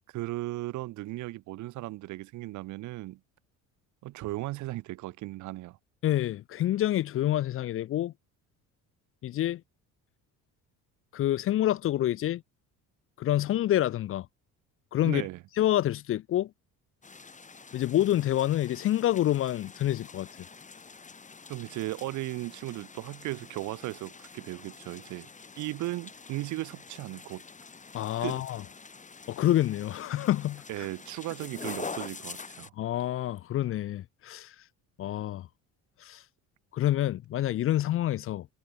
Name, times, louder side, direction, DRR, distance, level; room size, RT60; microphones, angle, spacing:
voice 1, 0.1-3.2 4.0-5.8 15.0-15.4 21.5-25.3 25.6-27.4 28.2-28.4 30.7-32.7, right 18 dB, 60° right, 0.7 m, -36 dB
voice 2, 6.0-8.1 9.2-9.6 11.1-12.4 13.2-14.3 14.9-15.2 15.6-16.5 17.7-20.3 27.9-28.6 29.3-30.9 32.8-34.6 35.0-35.5 36.0-36.2 36.7-38.5, left 13 dB, 40° left, 0.5 m, -27 dB
sound 1, 17.0-32.7, left 4 dB, 20° left, 4.6 m, -46 dB
cardioid pair, 120°, 33 cm